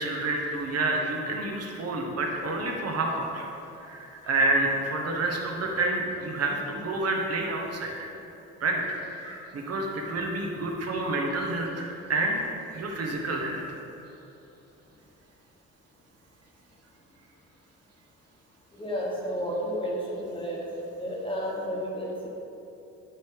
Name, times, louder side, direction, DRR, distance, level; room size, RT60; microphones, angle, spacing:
voice 1, 0.0-3.4 3.8-8.1 8.6-12.4 12.7-13.7, right 2 dB, 55° right, 1 dB, 1.2 m, -29 dB
voice 2, 18.8-20.6 21.0-22.3, equal, 15° left, -4 dB, 1.2 m, -31 dB
9.1 x 3.4 x 4.7 m, 2.9 s
cardioid pair, 90°, 30 cm